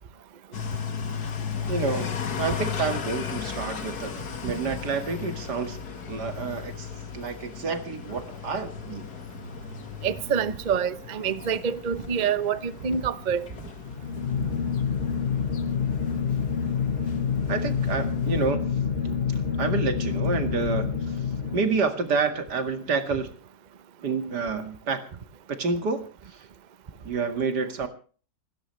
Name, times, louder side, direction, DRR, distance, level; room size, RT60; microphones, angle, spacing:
sound 1, 0.5-18.5, left 7 dB, 60° left, 2.0 m, -36 dB
voice 1, 1.7-2.1 2.4-9.1 17.1-18.6 19.0-21.2 21.5-23.3 24.0-25.0 25.5-26.5 27.0-27.9, right 4 dB, 65° right, 2.6 m, -29 dB
voice 2, 10.0-13.4, right 7 dB, 40° right, 0.7 m, -26 dB
sound 2, 13.8-22.2, left 6 dB, 35° left, 1.4 m, -27 dB
27.5 x 12.5 x 3.2 m
omnidirectional pair, 1.9 m